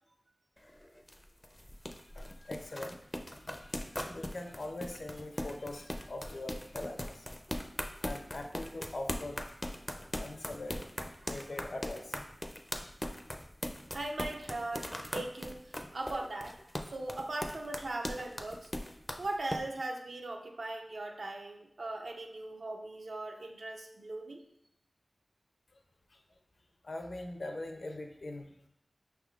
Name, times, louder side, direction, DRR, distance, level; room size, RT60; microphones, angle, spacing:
sound 1, 0.6-19.6, left 1 dB, 15° left, 0.4 m, -40 dB
voice 1, 1.9-3.0 3.4-7.3 8.0-9.6 10.2-10.8 11.1-12.3 25.7-25.8 26.1-26.4 26.8-28.7, left 2 dB, 70° left, 4 dB, 0.5 m, -43 dB
voice 2, 13.9-16.6 16.8-18.7 19.2-24.4, right 2 dB, 80° right, 2 dB, 0.6 m, -39 dB
5.6 x 3.4 x 2.4 m, 0.76 s
wide cardioid pair, 55°, 0 cm